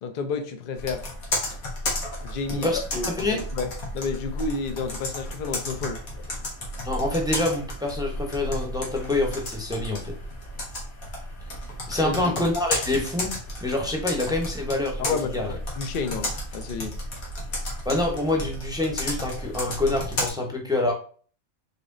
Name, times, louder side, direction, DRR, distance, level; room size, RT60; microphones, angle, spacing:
voice 1, 0.0-1.0 2.2-6.0 12.0-12.4 15.0-16.9, left 4 dB, 50° left, 8 dB, 0.6 m, -31 dB
Computer keyboard, 0.8-20.3, left 1 dB, 90° left, 1.8 m, -33 dB
voice 2, 2.5-3.4 6.8-10.2 11.9-13.3 13.6-15.6 17.8-20.9, left 2 dB, 5° right, 2 dB, 0.7 m, -26 dB
4.2 x 3.1 x 3.7 m, 0.43 s
omnidirectional pair, 1.4 m